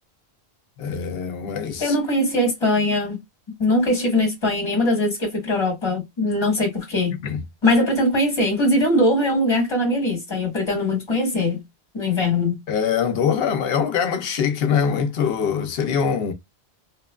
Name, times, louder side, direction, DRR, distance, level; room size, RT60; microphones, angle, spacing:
voice 1, 0.8-2.0 7.2-7.4 12.7-16.3, left 7 dB, 70° left, 0.8 m, -23 dB
voice 2, 1.8-3.2 3.6-7.2 7.6-11.6 11.9-12.6, left 1 dB, 25° left, 1.3 m, -21 dB
3.0 x 2.1 x 2.2 m
omnidirectional pair, 1.1 m